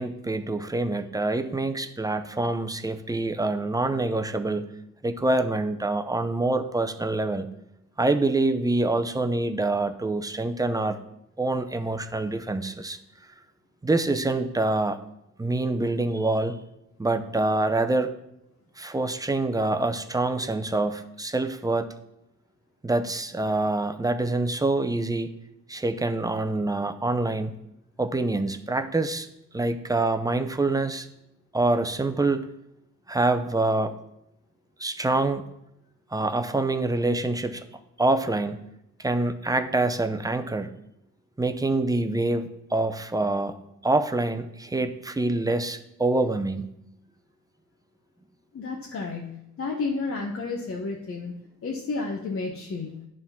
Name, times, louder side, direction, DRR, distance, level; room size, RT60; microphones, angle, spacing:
voice 1, 0.0-4.7 5.0-7.5 8.0-11.0 11.4-13.0 13.8-15.0 15.4-16.6 17.0-18.1 18.8-21.9 22.8-25.3 25.7-27.5 28.0-29.3 29.5-31.1 31.5-32.4 33.1-34.0 34.8-35.4 36.1-37.6 38.0-38.6 39.0-40.7 41.4-43.5 43.8-46.6, right 2 dB, 10° right, 8 dB, 0.6 m, -26 dB
voice 2, 48.5-51.3 51.6-53.0, left 3 dB, 45° left, -1 dB, 1.1 m, -31 dB
10.5 x 3.8 x 5.8 m, 0.83 s
cardioid pair, 90°, 30 cm